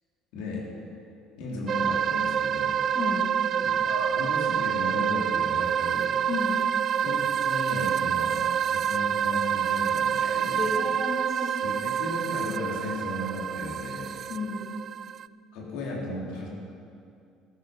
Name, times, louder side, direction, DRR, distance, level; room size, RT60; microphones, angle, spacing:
voice 1, 0.3-0.7 1.4-2.8 3.6-6.1 7.0-10.7 11.6-14.1 15.5-16.5, left 2 dB, 85° left, -3 dB, 3.5 m, -35 dB
sound 1, 1.7-15.3, right 8 dB, 45° right, 0.3 m, -27 dB
voice 2, 2.9-3.3 6.3-6.6 10.2-10.3 10.6-11.6 14.3-14.7, left 4 dB, 40° left, -2 dB, 2.5 m, -32 dB
13.5 x 13.5 x 5.3 m, 2.5 s
cardioid pair, 120°, 0 cm